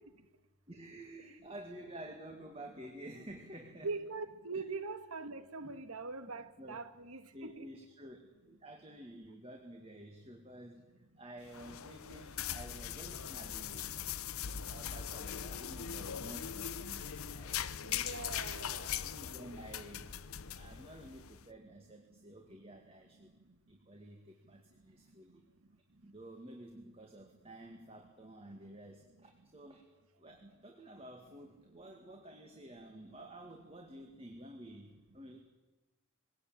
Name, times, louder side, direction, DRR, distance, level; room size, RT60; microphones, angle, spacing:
voice 1, 0.7-3.9 4.5-4.6 5.6-5.7 6.6-6.8 7.3-8.2 8.5-10.8 11.2-14.0 14.4-18.0 19.0-20.1 20.5-23.3 23.7-25.4 26.0-29.8 30.2-35.4, right 1 dB, 25° right, 2.1 m, -51 dB
voice 2, 3.8-7.7 17.9-18.9, right 3 dB, 85° right, 1.7 m, -42 dB
sound 1, 11.4-21.4, left 9 dB, 80° left, 0.8 m, -41 dB
22.0 x 18.0 x 9.0 m
head